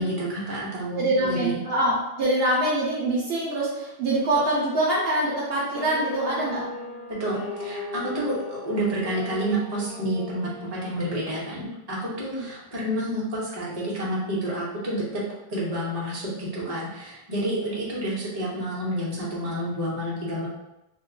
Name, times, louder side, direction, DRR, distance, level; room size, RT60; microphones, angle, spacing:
voice 1, 0.0-1.6 7.2-15.2 15.5-20.5, right 1 dB, 40° right, -6 dB, 1.0 m, -29 dB
voice 2, 0.9-6.6, right 1 dB, 70° right, -4 dB, 0.9 m, -24 dB
sound 1, 5.7-11.2, left 2 dB, 85° left, 1.1 m, -37 dB
2.9 x 2.2 x 3.7 m, 0.91 s
omnidirectional pair, 1.0 m